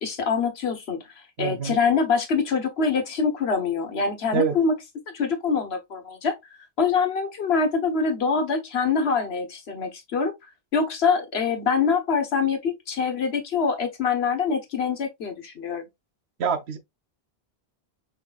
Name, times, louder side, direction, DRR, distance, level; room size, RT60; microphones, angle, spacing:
voice 1, 0.0-1.1 1.4-4.8 5.1-6.3 6.8-10.3 10.7-15.8, left 5 dB, 90° left, 1.3 m, -24 dB
voice 2, 1.4-1.8 4.3-4.6 16.4-16.8, right 7 dB, 85° right, 1.0 m, -25 dB
5.1 x 3.9 x 2.3 m
omnidirectional pair, 1.0 m